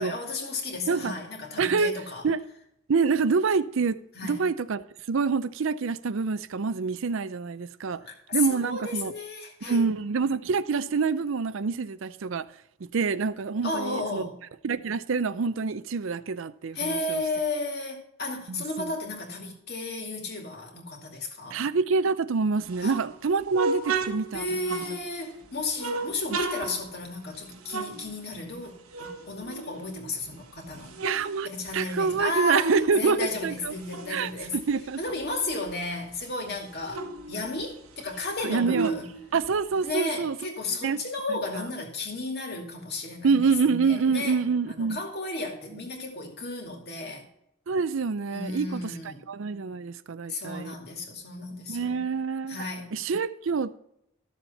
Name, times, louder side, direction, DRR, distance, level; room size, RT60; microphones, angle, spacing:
voice 1, 0.0-2.2 4.1-4.5 7.9-9.9 13.6-14.3 16.7-21.6 22.8-23.0 24.3-31.0 31.4-34.6 35.0-39.1 39.8-43.4 43.9-44.4 44.7-47.2 48.3-49.2 50.3-52.0 52.5-52.9, left 2 dB, 45° left, 2.3 m, -33 dB
voice 2, 1.6-2.4 2.9-8.0 8.3-9.1 9.6-12.5 12.8-14.3 14.6-17.2 18.5-18.9 21.5-24.5 24.7-24.8 31.0-33.7 34.1-35.0 38.4-38.9 39.3-40.4 40.8-41.0 41.3-41.7 43.2-45.0 47.7-48.9 49.3-50.7 51.7-52.7 52.9-53.8, right 5 dB, 65° right, 0.5 m, -26 dB
sound 1, 22.6-25.3 25.8-28.7 28.9-30.3 30.7-32.9 33.2-35.8 36.1-36.2 36.5-39.9, right 3 dB, 85° right, 1.3 m, -34 dB
13.0 x 7.1 x 4.1 m
head